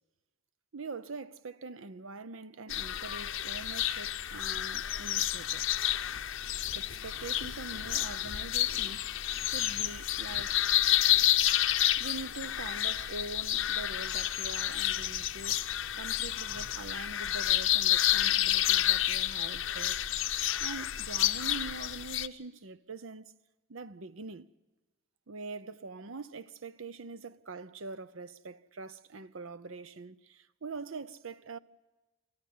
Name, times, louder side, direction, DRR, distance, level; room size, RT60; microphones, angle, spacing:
voice 1, 0.7-5.7 6.7-9.1 9.4-10.7 12.0-20.0 20.6-23.3 23.7-24.5 25.3-31.6, right 3 dB, 75° right, 0.8 m, -44 dB
sound 1, 2.7-22.3, left 13 dB, 65° left, 0.7 m, -30 dB
24.5 x 14.5 x 9.7 m
head